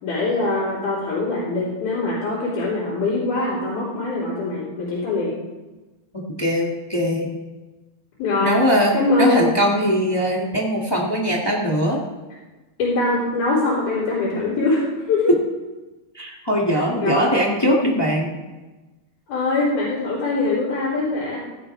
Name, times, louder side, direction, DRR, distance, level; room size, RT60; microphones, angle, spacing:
voice 1, 0.0-5.4 8.2-8.5 8.9-9.5 12.8-15.3 16.7-17.5 19.3-21.4, left 2 dB, 80° left, -9 dB, 5.7 m, -23 dB
voice 2, 6.1-7.3 8.4-12.0 16.1-18.3, equal, 20° left, -3 dB, 0.6 m, -21 dB
16.0 x 15.0 x 3.4 m, 1.2 s
omnidirectional pair, 4.2 m